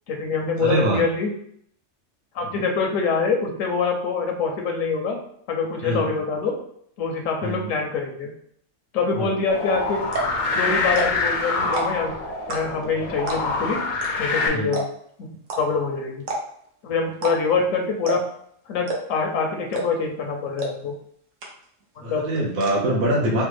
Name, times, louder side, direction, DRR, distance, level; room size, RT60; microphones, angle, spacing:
voice 1, 0.1-1.3 2.3-5.2 5.5-6.6 7.0-8.3 8.9-10.0 10.5-12.2 12.5-13.8 14.2-14.9 15.2-15.3 15.6-16.2 16.8-18.2 18.7-20.9 22.0-22.3, left 4 dB, 80° left, 2 dB, 1.0 m, -25 dB
voice 2, 0.6-1.0 5.8-6.1 7.4-7.6 9.1-9.4 14.5-14.7 22.0-23.4, right 1 dB, 55° right, -3 dB, 0.7 m, -23 dB
sound 1, 9.5-14.5, left 3 dB, 60° left, 0.5 m, -25 dB
sound 2, 9.6-9.7 10.0-10.4 10.9-11.3 11.6-12.1 12.5-12.9 13.3-13.6 14.0-14.1 14.3-14.4 14.7-15.1 15.5-15.6 16.2-16.7 17.1-17.6 18.1-18.4 18.9-19.2 19.7-20.1 20.6-20.7 21.0-21.1 21.4-21.8 22.1-22.7, right 3 dB, 75° right, 1.1 m, -29 dB
3.4 x 2.1 x 3.2 m, 0.65 s
omnidirectional pair, 1.4 m